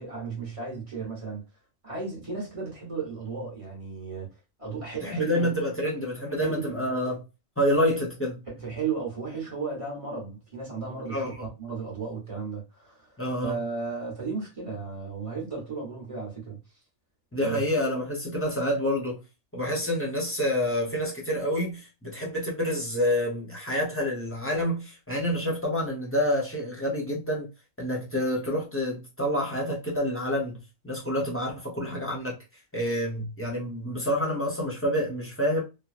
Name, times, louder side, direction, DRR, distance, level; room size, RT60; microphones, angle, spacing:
voice 1, 0.0-1.4 1.8-4.3 4.6-5.5 6.4-6.8 8.5-16.6 17.4-17.6, right 5 dB, 25° right, 1.3 m, -34 dB
voice 2, 5.0-7.2 7.6-8.4 11.1-11.3 13.2-13.6 17.3-19.2 19.5-27.5 27.8-30.6 30.8-32.3 32.7-35.6, equal, 10° left, 0.9 m, -28 dB
3.0 x 2.4 x 2.4 m
omnidirectional pair, 1.4 m